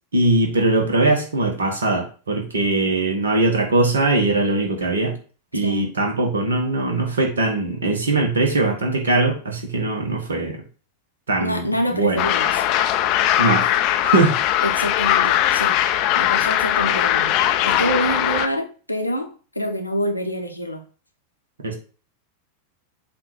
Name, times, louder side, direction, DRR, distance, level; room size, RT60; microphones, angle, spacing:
voice 1, 0.1-5.2 5.5-10.6 11.3-11.6 11.9-12.2 13.4-13.8 14.0-14.4 21.6-21.7, right 2 dB, 70° right, 1.3 m, -21 dB
voice 2, 5.5-5.9 11.4-12.6 14.6-15.8 16.1-17.4 17.6-20.8, equal, 90° left, 1.0 m, -26 dB
sound 1, 12.2-18.5, left 12 dB, 40° left, 0.5 m, -20 dB
7.5 x 2.7 x 4.7 m
figure-of-eight pair, 90°, 0 cm